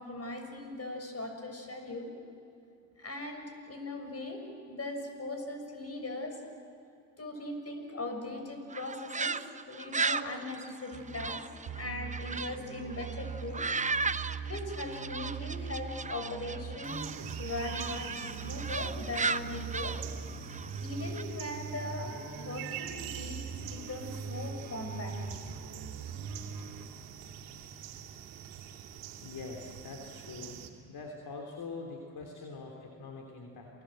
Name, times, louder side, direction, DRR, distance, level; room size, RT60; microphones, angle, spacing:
voice 1, 0.0-2.1 3.0-6.4 7.2-11.4 11.7-13.7 14.1-17.1 17.4-20.0 20.8-23.4 23.7-25.4, left 2 dB, 30° left, 5 dB, 6.5 m, -40 dB
sound 1, 8.7-12.6 12.9-21.2, right 4 dB, 15° right, 0.8 m, -36 dB
sound 2, 10.9-11.4 11.7-26.9, right 5 dB, 50° right, 3.9 m, -41 dB
sound 3, 16.8-30.7, right 9 dB, 80° right, 2.7 m, -46 dB
voice 2, 29.2-30.6 30.9-33.7, left 4 dB, 55° left, 1 dB, 3.4 m, -44 dB
28.5 x 20.0 x 7.8 m, 2.6 s
hypercardioid pair, 60°, 46 cm